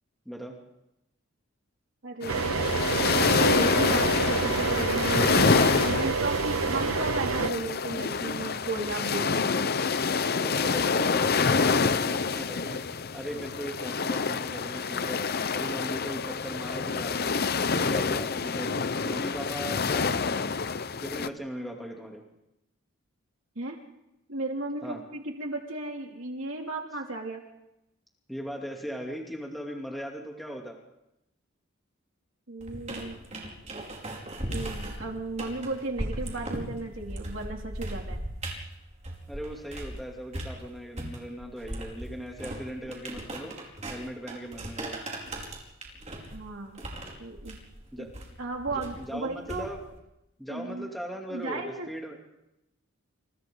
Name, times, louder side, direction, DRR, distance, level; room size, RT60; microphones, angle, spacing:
voice 1, 2.0-2.8 3.0-9.5 23.6-23.8 24.3-27.4 32.5-33.2 34.5-38.2 46.3-46.8 47.2-47.6 48.0-48.1 48.4-49.7 50.5-50.9 51.3-51.9, right 2 dB, 70° right, 1 dB, 2.8 m, -35 dB
sound 1, 2.2-21.3, left 5 dB, 50° left, 0.8 m, -27 dB
sound 2, 2.3-7.5, right 5 dB, 85° right, 0.8 m, -28 dB
voice 2, 10.4-12.8 13.1-15.2 15.5-17.4 17.7-18.7 19.0-20.4 21.0-22.2 24.8-25.0 28.3-30.8 39.3-43.5 43.9-45.0 47.9-48.1 48.7-49.8 50.4-52.2, equal, ahead, -1 dB, 2.9 m, -38 dB
sound 3, 32.6-40.0 40.3-49.9, right 1 dB, 35° right, 5.1 m, -38 dB
29.5 x 29.0 x 3.9 m, 0.89 s
head